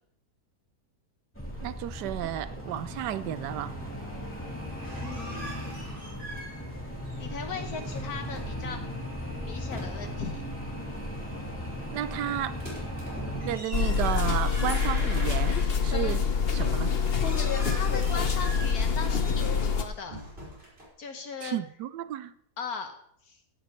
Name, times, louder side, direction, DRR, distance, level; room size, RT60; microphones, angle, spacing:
sound 1, 1.3-13.6, equal, 5° left, 3.1 m, -37 dB
voice 1, 1.6-3.8 11.9-12.6 13.3-16.9 21.4-22.3, right 12 dB, 85° right, 1.3 m, -33 dB
squeaky door with closing and opening, 4.7-6.8 7.1-8.6 9.1-10.3 12.5-16.0 16.4-20.9, right 1 dB, 35° right, 5.3 m, -43 dB
voice 2, 5.0-5.4 7.2-8.8 9.4-10.4 17.3-20.2 21.0-21.6 22.6-22.9 23.2-23.4, left 6 dB, 65° left, 1.4 m, -38 dB
sound 2, 13.7-19.8, left 6 dB, 40° left, 1.1 m, -26 dB
15.5 x 11.5 x 3.2 m
omnidirectional pair, 1.8 m